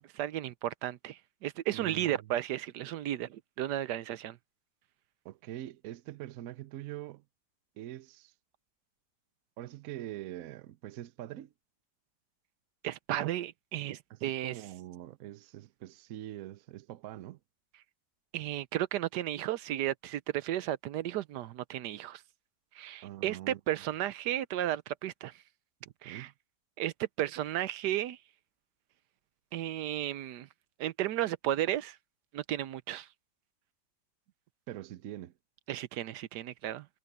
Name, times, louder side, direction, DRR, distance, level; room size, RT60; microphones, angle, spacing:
voice 1, 0.2-4.4 12.8-14.6 18.3-22.2 22.7-25.4 26.0-26.3 26.8-28.2 29.5-30.5 30.8-32.0 32.3-33.1 35.7-36.9, right 12 dB, 80° right, 1.3 m, -34 dB
voice 2, 1.7-2.3 5.2-7.2 7.8-8.3 9.6-11.5 14.1-17.4 23.0-23.6 25.8-26.3 34.7-35.3, right 13 dB, 65° right, 1.0 m, -44 dB
omnidirectional pair, 1.8 m